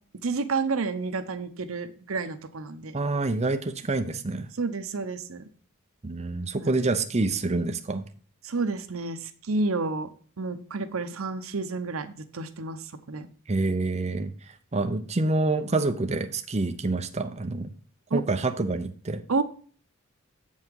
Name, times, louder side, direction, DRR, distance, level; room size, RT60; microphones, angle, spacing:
voice 1, 0.2-3.0 4.6-5.4 6.6-6.7 8.4-9.2 9.5-10.1 10.4-12.8 13.1-13.3 18.1-18.2 19.3-19.4, right 3 dB, 75° right, 11 dB, 0.8 m, -30 dB
voice 2, 2.9-4.5 6.0-8.0 13.5-14.3 14.7-17.7 18.1-19.2, right 2 dB, 30° right, 7 dB, 0.7 m, -27 dB
7.9 x 5.6 x 4.7 m, 0.44 s
head